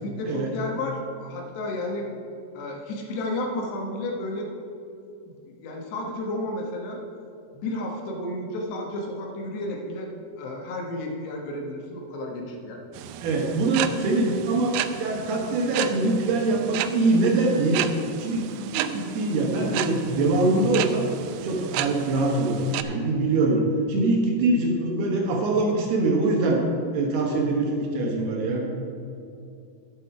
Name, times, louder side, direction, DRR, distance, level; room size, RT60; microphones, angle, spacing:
voice 1, 0.0-2.2 2.5-4.5 5.3-7.0 7.5-12.8 14.0-14.2, left 1 dB, 75° left, 0 dB, 3.2 m, -32 dB
sound 1, 12.9-22.8, right 11 dB, 85° right, 2.4 m, -33 dB
voice 2, 13.2-17.8 18.2-21.1 21.4-26.6 26.9-28.7, right 2 dB, 70° right, 0 dB, 2.8 m, -23 dB
12.0 x 8.8 x 4.7 m, 2.6 s
omnidirectional pair, 5.3 m